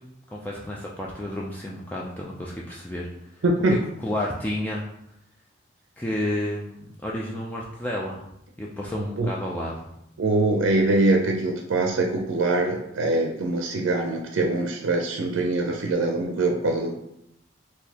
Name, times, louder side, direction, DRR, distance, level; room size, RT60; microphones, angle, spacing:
voice 1, 0.3-3.1 4.0-4.8 6.0-8.3 8.6-9.9, left 1 dB, 10° left, -4 dB, 0.3 m, -31 dB
voice 2, 3.4-3.8 8.9-9.3 10.2-16.9, right 2 dB, 85° right, 2 dB, 0.5 m, -23 dB
3.9 x 2.7 x 2.8 m, 0.79 s
head